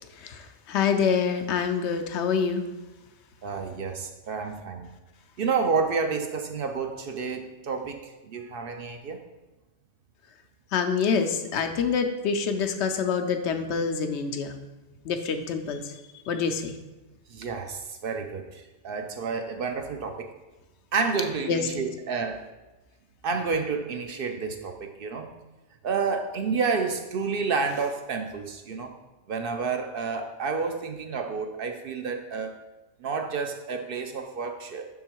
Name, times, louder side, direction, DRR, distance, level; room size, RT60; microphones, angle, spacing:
voice 1, 0.7-2.6 10.7-14.5 15.1-15.8 16.3-16.7 21.5-21.6, left 6 dB, 75° left, 6 dB, 0.9 m, -26 dB
voice 2, 3.4-4.9 5.4-9.2 17.3-20.3 20.9-22.4 23.2-25.3 25.8-28.9 29.3-32.5 33.0-34.9, right 5 dB, 60° right, 5 dB, 0.7 m, -30 dB
6.2 x 3.7 x 4.5 m, 1.1 s
omnidirectional pair, 1.2 m